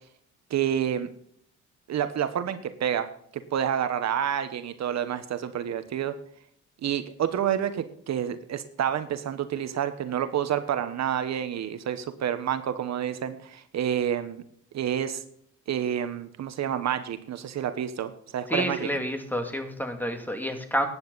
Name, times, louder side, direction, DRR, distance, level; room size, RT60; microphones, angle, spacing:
voice 1, 0.5-1.1 1.9-6.2 6.8-14.4 14.7-15.2 15.7-18.9, right 9 dB, 65° right, 10 dB, 1.1 m, -29 dB
voice 2, 18.5-20.9, equal, 5° left, 6 dB, 2.3 m, -29 dB
14.5 x 9.9 x 4.0 m, 0.65 s
cardioid pair, 90°, 30 cm